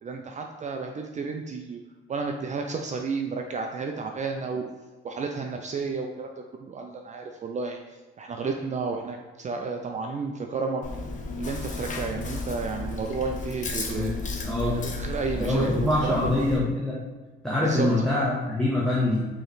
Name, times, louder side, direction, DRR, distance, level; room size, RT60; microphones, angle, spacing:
voice 1, 0.0-1.8 2.1-4.7 5.0-10.8 11.4-14.1 14.6-16.3 17.6-17.9, right 4 dB, 40° right, 3 dB, 0.4 m, -32 dB
Chewing mastication, 10.8-16.6, left 3 dB, 40° left, 0.6 m, -33 dB
voice 2, 14.4-14.8 15.4-17.0 17.4-19.3, left 1 dB, 5° left, -7 dB, 0.9 m, -24 dB
4.5 x 3.1 x 3.2 m, 1.2 s
cardioid pair, 90°, 20 cm